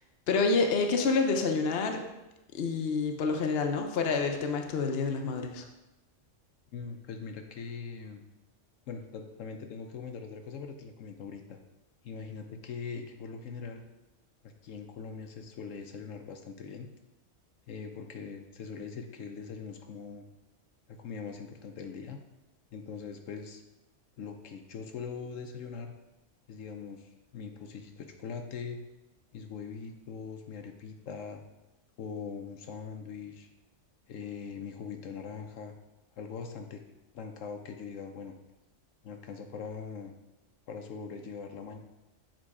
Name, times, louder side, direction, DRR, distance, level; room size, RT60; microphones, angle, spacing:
voice 1, 0.3-2.0 2.5-5.7, left 4 dB, 60° left, 4 dB, 0.9 m, -28 dB
voice 2, 6.7-8.2 8.9-11.6 12.0-13.8 14.4-16.9 17.7-20.2 20.9-22.2 22.7-23.6 24.2-25.9 26.5-28.8 29.3-31.4 32.0-33.5 34.1-35.7 36.1-36.8 37.1-38.3 39.0-40.1 40.7-41.8, left 5 dB, 80° left, 5 dB, 1.0 m, -41 dB
7.6 x 3.8 x 4.8 m, 0.99 s
omnidirectional pair, 1.3 m